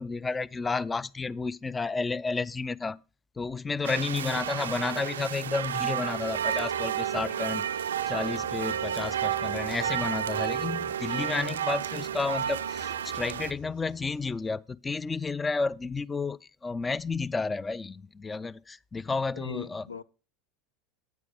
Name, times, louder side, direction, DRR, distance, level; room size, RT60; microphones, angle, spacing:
voice 1, 0.0-3.0 3.4-7.7 8.1-19.8, left 4 dB, 20° left, 0.3 m, -31 dB
sound 1, 3.8-13.5, right 9 dB, 80° right, 0.3 m, -31 dB
sound 2, 6.1-14.5, left 5 dB, 70° left, 3.7 m, -52 dB
voice 2, 19.3-20.0, left 5 dB, 90° left, 0.4 m, -39 dB
9.0 x 8.5 x 3.4 m
hypercardioid pair, 80°, 0 cm